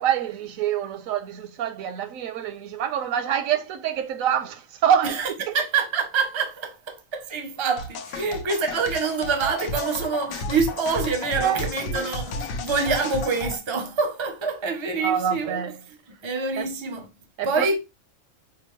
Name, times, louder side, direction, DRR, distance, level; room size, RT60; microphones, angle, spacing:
voice 1, 0.0-5.5 11.4-12.1 15.0-15.8 16.6-16.7 17.4-17.8, right 9 dB, 80° right, 1.0 m, -26 dB
voice 2, 5.0-15.6 16.2-17.1 17.4-17.8, right 4 dB, 35° right, 0.5 m, -26 dB
sound 1, 7.8-13.6, left 2 dB, 90° left, 1.0 m, -32 dB
5.0 x 2.0 x 3.0 m
omnidirectional pair, 1.4 m